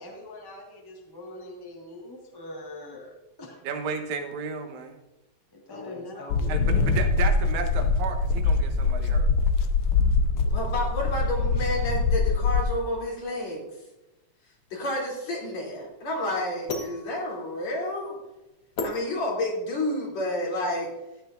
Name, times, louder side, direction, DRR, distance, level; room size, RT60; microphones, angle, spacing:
voice 1, 0.0-3.1 3.4-3.6 5.5-6.6, left 1 dB, 20° left, -1 dB, 0.6 m, -43 dB
voice 2, 3.6-5.0 6.5-9.3, right 5 dB, 85° right, 5 dB, 2.5 m, -33 dB
voice 3, 5.7-6.9 10.5-13.6 14.7-18.2 18.8-20.9, left 1 dB, 65° left, -3 dB, 4.2 m, -30 dB
sound 1, 6.3-12.7, left 4 dB, 85° left, 1.1 m, -23 dB
sound 2, 14.6-19.8, left 2 dB, 50° left, 1.2 m, -37 dB
14.5 x 10.0 x 2.5 m, 1.0 s
omnidirectional pair, 3.4 m